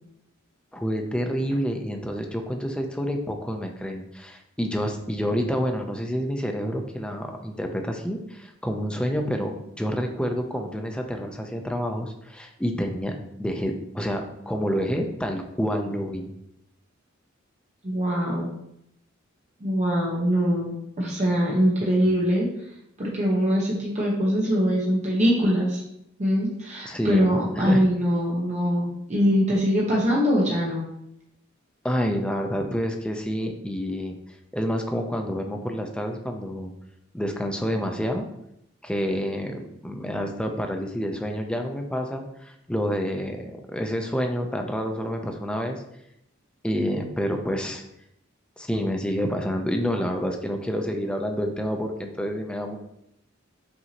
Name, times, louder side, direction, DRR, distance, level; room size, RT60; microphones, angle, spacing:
voice 1, 0.7-13.1 13.4-16.3 21.8-22.2 26.8-27.8 31.8-34.2 34.5-36.7 37.1-38.3 38.8-45.8 46.6-47.8 48.6-52.8, equal, 5° left, 3 dB, 0.4 m, -28 dB
voice 2, 17.8-18.5 19.6-22.5 23.0-25.8 26.2-30.9, equal, 35° right, -4 dB, 0.8 m, -23 dB
5.7 x 2.7 x 2.8 m, 0.78 s
head